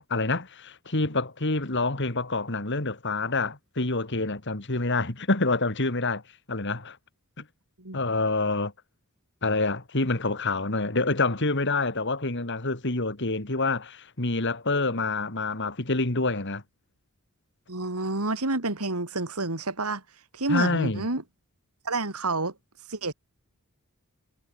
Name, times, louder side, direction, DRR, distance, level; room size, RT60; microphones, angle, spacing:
voice 1, 0.0-6.2 6.5-7.0 7.4-7.5 7.9-8.7 9.4-16.6 20.5-21.1, left 3 dB, 55° left, 2.7 m, -27 dB
voice 2, 17.7-20.0 20.3-21.2 21.8-22.5 22.9-23.1, right 2 dB, 80° right, 3.3 m, -29 dB
head